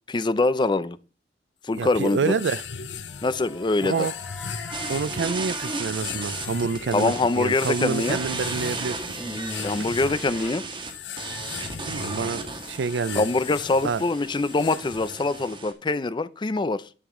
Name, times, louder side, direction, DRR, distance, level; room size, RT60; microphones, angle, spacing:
voice 1, 0.1-1.0 1.6-2.4 3.2-4.1 6.9-8.2 9.6-10.6 13.1-16.9, left 3 dB, 25° left, 0.4 m, -24 dB
sound 1, 1.7-15.6, left 7 dB, 85° left, 0.7 m, -38 dB
voice 2, 1.8-2.6 3.8-4.1 4.9-9.0 11.9-13.2 13.8-14.0, right 5 dB, 85° right, 0.4 m, -27 dB
sound 2, 3.1-10.5, left 2 dB, 5° left, 4.4 m, -42 dB
sound 3, 4.7-15.7, right 3 dB, 30° right, 1.5 m, -35 dB
10.0 x 7.9 x 3.7 m
head